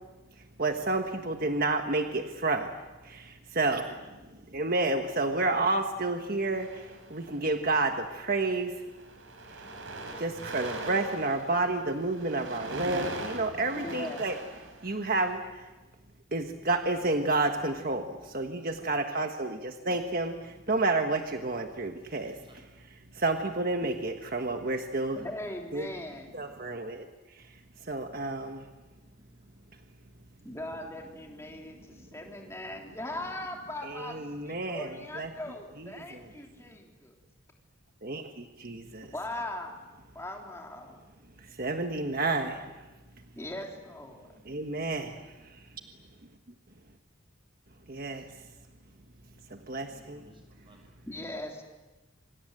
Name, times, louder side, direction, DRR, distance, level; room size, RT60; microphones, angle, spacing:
voice 1, 0.4-2.8 3.0-8.7 9.5-9.7 10.2-14.4 14.8-15.7 16.3-22.4 23.1-25.2 25.7-25.9 26.3-28.7 32.0-32.1 33.8-35.3 35.8-36.3 38.0-39.1 41.4-42.8 44.4-45.6 47.9-48.3 49.5-50.2, right 2 dB, 45° right, 5 dB, 1.5 m, -30 dB
sound 1, 6.5-7.5 8.3-8.5 8.8-15.3, right 2 dB, 70° right, 4.4 m, -41 dB
voice 2, 13.8-14.2 25.1-26.3 30.4-34.2 34.4-37.2 39.1-39.7 40.1-41.0 43.3-44.3 51.1-51.6, left 1 dB, 15° left, 1 dB, 3.5 m, -40 dB
voice 3, 22.2-22.7 29.1-29.3 48.1-48.2 49.7-51.0, right 1 dB, 25° right, 3 dB, 6.4 m, -60 dB
27.5 x 25.5 x 8.0 m, 1.1 s
head